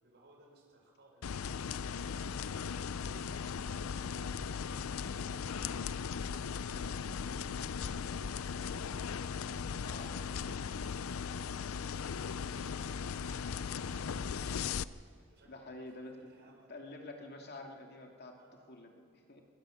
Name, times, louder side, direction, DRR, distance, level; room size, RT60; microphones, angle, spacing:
voice 1, 0.0-4.5 4.7-9.1 9.9-11.6 13.2-14.7 15.3-16.7 18.3-18.8, right 1 dB, 55° right, 1 dB, 5.2 m, -63 dB
sound 1, 1.2-14.8, left 6 dB, 85° left, 0.5 m, -38 dB
voice 2, 9.8-10.2 15.5-16.3 16.7-18.4 18.7-19.4, left 2 dB, 50° left, 2 dB, 2.4 m, -48 dB
22.0 x 19.0 x 6.4 m, 2.4 s
head